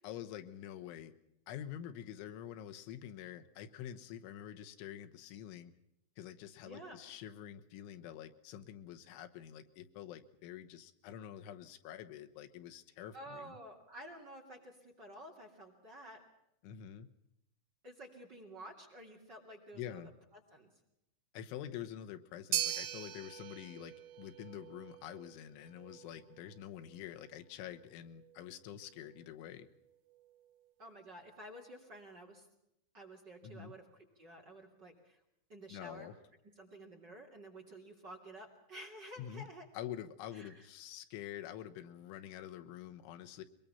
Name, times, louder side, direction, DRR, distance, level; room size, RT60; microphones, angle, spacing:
voice 1, 0.0-1.1 1.5-5.7 6.2-13.6 16.6-17.1 19.8-20.1 21.3-29.7 33.4-33.7 35.7-36.1 39.2-39.5 39.7-43.4, left 10 dB, 90° left, 8 dB, 3.6 m, -47 dB
voice 2, 6.6-7.0 13.1-16.2 17.8-20.7 30.8-32.5 32.9-35.2 35.5-36.1 36.6-39.7 40.3-40.7, right 1 dB, 30° right, 1 dB, 2.5 m, -51 dB
sound 1, 22.5-30.9, right 12 dB, 75° right, 3.3 m, -43 dB
23.0 x 22.0 x 5.7 m, 0.82 s
omnidirectional pair, 5.3 m